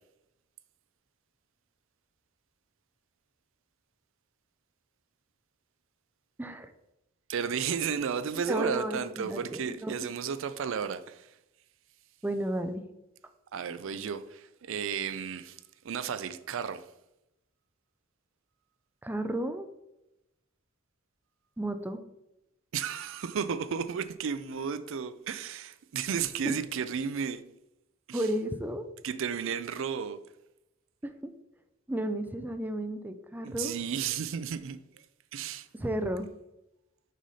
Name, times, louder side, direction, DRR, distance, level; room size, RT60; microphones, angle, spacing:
voice 1, 6.4-6.7 8.5-10.0 12.2-12.9 19.0-19.7 21.6-22.0 28.1-28.9 31.0-31.3 31.9-33.8 35.7-36.3, right 1 dB, 10° right, 0.4 m, -33 dB
voice 2, 7.3-11.3 13.5-16.9 22.7-27.4 28.1-28.3 29.0-30.2 33.4-34.8 35.3-35.7, right 7 dB, 65° right, 0.4 m, -33 dB
6.2 x 5.5 x 4.1 m
head